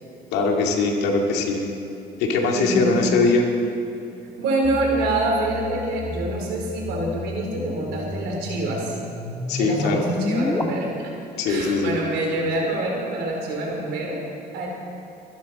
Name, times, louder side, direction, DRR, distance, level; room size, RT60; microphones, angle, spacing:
voice 1, 0.3-1.7 2.2-3.4 9.5-10.0 11.4-12.0, left 3 dB, 90° left, 1 dB, 2.3 m, -21 dB
voice 2, 2.5-3.0 4.4-9.0 9.6-11.2 11.5-14.7, right 2 dB, 80° right, 0 dB, 3.8 m, -26 dB
sound 1, 4.6-10.6, left 2 dB, 15° left, 1.4 m, -31 dB
24.5 x 12.5 x 4.2 m, 2.6 s
cardioid pair, 110°, 17 cm